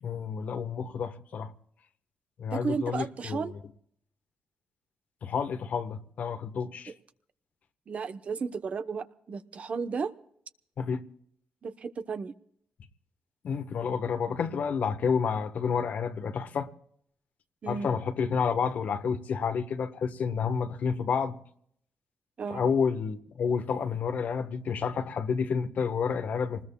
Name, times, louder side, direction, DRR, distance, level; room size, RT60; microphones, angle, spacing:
voice 1, 0.0-1.5 2.4-3.4 5.2-6.9 10.8-11.0 13.4-16.7 17.7-21.4 22.5-26.6, left 6 dB, 70° left, 1.3 m, -30 dB
voice 2, 2.5-3.5 7.9-10.1 11.6-12.3 17.6-17.9 22.4-22.7, right 5 dB, 55° right, 1.0 m, -33 dB
26.5 x 20.0 x 2.3 m
cardioid pair, 70°, 3 cm